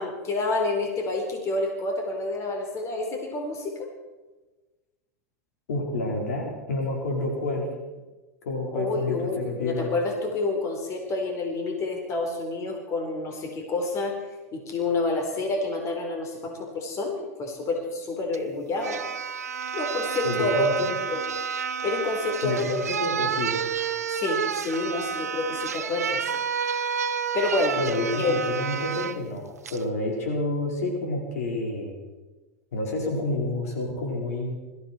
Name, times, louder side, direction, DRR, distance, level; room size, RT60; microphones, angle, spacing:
voice 1, 0.0-3.9 8.7-14.2 14.5-19.0 19.7-20.7 21.1-21.2 21.8-22.8 24.1-26.2 27.3-27.8 28.1-28.4, left 2 dB, 35° left, 2 dB, 4.2 m, -28 dB
voice 2, 5.7-7.7 8.4-9.9 20.2-20.9 22.4-23.6 27.8-32.0 32.7-34.5, left 2 dB, 75° left, 0 dB, 4.6 m, -29 dB
sound 1, 18.3-18.4 18.8-29.2 29.7-29.8, right 7 dB, 90° right, 0.8 m, -30 dB
21.0 x 14.5 x 4.5 m, 1.2 s
hypercardioid pair, 100°, 8 cm